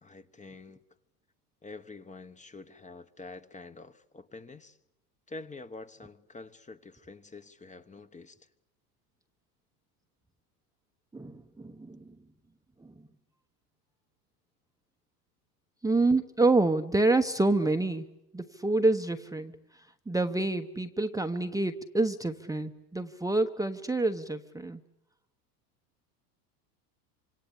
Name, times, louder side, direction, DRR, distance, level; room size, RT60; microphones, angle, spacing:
voice 1, 0.0-0.8 1.6-4.8 5.3-8.4, left 3 dB, 15° left, 1.2 m, -47 dB
voice 2, 11.1-12.1 12.8-12.9 15.8-18.1 18.3-19.6 20.1-24.8, right 2 dB, 5° right, 1.0 m, -27 dB
26.5 x 26.0 x 8.6 m
supercardioid pair, 105°, 48 cm